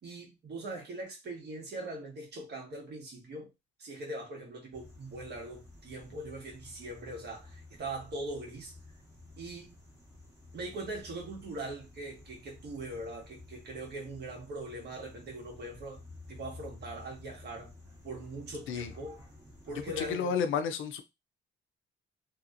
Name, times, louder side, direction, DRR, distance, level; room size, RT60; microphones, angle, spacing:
voice 1, 0.0-3.5 3.8-8.7 9.4-9.8 10.5-16.0 16.3-17.7 18.0-19.2 19.7-20.3, right 2 dB, 55° right, 1.5 m, -41 dB
sound 1, 4.7-20.2, left 2 dB, 15° right, 1.8 m, -53 dB
voice 2, 20.0-21.0, left 7 dB, 85° left, 0.5 m, -31 dB
2.9 x 2.8 x 2.5 m
cardioid pair, 90°, 20 cm